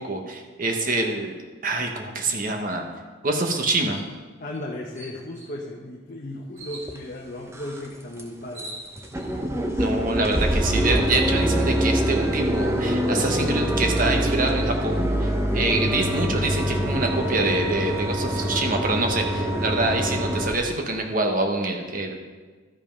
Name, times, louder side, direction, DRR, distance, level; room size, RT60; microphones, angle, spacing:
voice 1, 0.0-1.3 1.6-2.8 3.2-4.0 9.8-22.2, right 2 dB, 40° right, 3 dB, 1.1 m, -25 dB
sound 1, 3.9-4.1 4.5-4.6 5.0-5.5 6.5-6.9 8.0-8.1 8.4-9.3, right 1 dB, 70° right, 2.6 m, -41 dB
voice 2, 4.4-8.7 9.6-9.9 10.1-10.4 15.6-15.8 19.3-19.7, left 1 dB, 40° left, -2 dB, 0.9 m, -36 dB
sound 2, 6.9-7.0 7.5-7.9 8.2-8.3 8.6-8.7 9.0-20.5, right 1 dB, 15° right, 0.7 m, -24 dB
12.5 x 5.5 x 5.3 m, 1.4 s
head